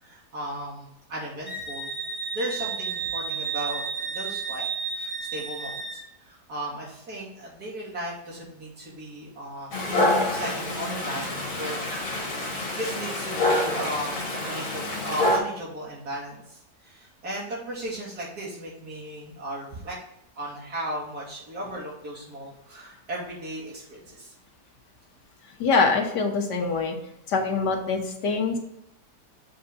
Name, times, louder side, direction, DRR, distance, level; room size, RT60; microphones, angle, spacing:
voice 1, 0.0-1.9 2.3-11.8 12.2-20.0 20.4-24.3, right 1 dB, 60° right, -6 dB, 3.3 m, -36 dB
Wind instrument woodwind instrument, 1.5-6.0, right 5 dB, 20° right, 1.3 m, -32 dB
Dog, 9.7-15.4, left 1 dB, 55° left, 2.0 m, -27 dB
voice 2, 25.6-27.0 27.3-28.6, left 4 dB, 80° left, 2 dB, 1.9 m, -24 dB
7.3 x 5.0 x 4.0 m, 0.81 s
omnidirectional pair, 1.8 m